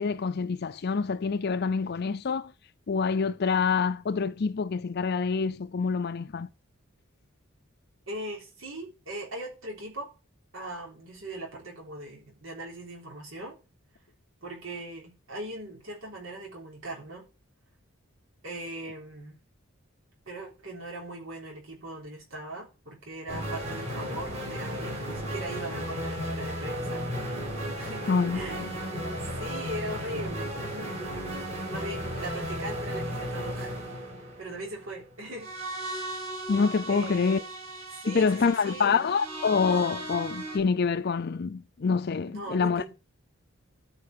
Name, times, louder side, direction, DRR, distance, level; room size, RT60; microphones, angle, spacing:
voice 1, 0.0-2.5 2.9-6.5 28.1-28.7 36.5-37.4 38.1-42.8, left 5 dB, 50° left, 0.5 m, -26 dB
voice 2, 8.1-10.1 10.5-13.6 14.4-17.3 18.4-19.4 20.3-27.0 27.8-28.1 28.3-28.7 29.3-31.0 31.7-33.8 34.4-35.5 36.9-37.5 37.9-39.0 42.3-42.9, right 1 dB, 70° right, 3.7 m, -39 dB
sound 1, 23.3-40.6, equal, 30° right, 5.1 m, -35 dB
13.0 x 5.3 x 6.7 m
head